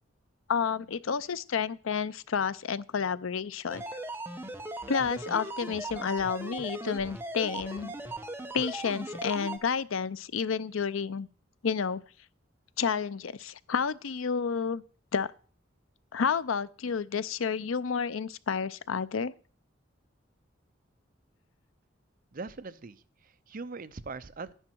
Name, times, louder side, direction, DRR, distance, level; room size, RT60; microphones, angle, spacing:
voice 1, 0.5-3.8 4.9-7.9 8.5-11.3 11.6-12.0 12.8-14.8 15.1-15.3 16.1-19.3, left 6 dB, 80° left, 0.5 m, -30 dB
sound 1, 3.7-9.6, right 2 dB, 10° right, 1.0 m, -39 dB
voice 2, 22.3-24.5, right 4 dB, 45° right, 0.6 m, -41 dB
11.0 x 10.0 x 4.6 m
head